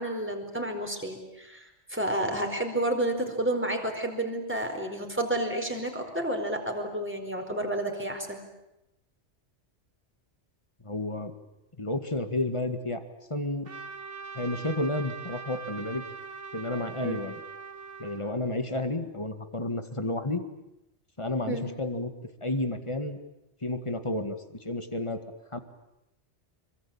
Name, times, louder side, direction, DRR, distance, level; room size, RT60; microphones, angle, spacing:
voice 1, 0.0-8.4 17.0-17.2 21.5-21.7, right 1 dB, 10° right, 3 dB, 4.6 m, -30 dB
voice 2, 10.8-11.3 11.8-13.0 13.3-13.7 14.3-16.0 16.5-17.4 18.0-20.4 21.2-22.1 22.4-23.2 23.6-25.2 25.5-25.6, left 2 dB, 25° left, 8 dB, 2.0 m, -31 dB
Trumpet, 13.6-18.3, right 5 dB, 80° right, 3.4 m, -42 dB
26.5 x 23.5 x 8.9 m, 0.89 s
omnidirectional pair, 1.2 m